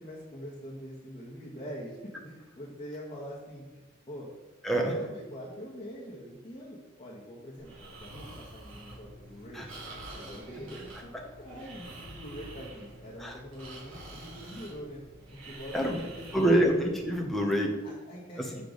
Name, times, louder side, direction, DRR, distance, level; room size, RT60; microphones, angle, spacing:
voice 1, 0.0-4.3 4.7-9.7 10.1-15.0 15.5-16.7 17.8-18.6, equal, 25° left, -8 dB, 1.3 m, -44 dB
Breathing, 7.6-17.3, right 1 dB, 70° right, 2.3 m, -47 dB
voice 2, 16.3-17.7, right 1 dB, ahead, 0 dB, 0.8 m, -25 dB
6.8 x 6.7 x 3.9 m, 1.1 s
head